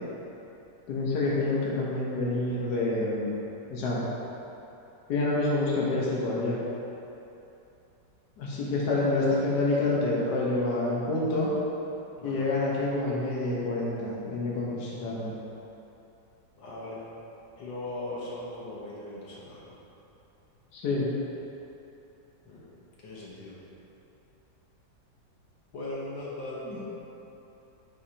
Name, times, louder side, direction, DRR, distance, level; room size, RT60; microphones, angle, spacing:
voice 1, 0.9-3.4 3.7-4.0 5.1-6.6 8.4-11.5 12.2-15.3 20.7-21.1 26.7-26.8, left 2 dB, 65° left, -5 dB, 1.6 m, -27 dB
voice 2, 12.2-12.5 16.6-17.0 17.6-19.7 22.5-22.6 23.0-23.6 25.7-26.8, left 1 dB, 85° left, -6 dB, 1.9 m, -39 dB
10.0 x 4.8 x 2.8 m, 2.9 s
omnidirectional pair, 2.0 m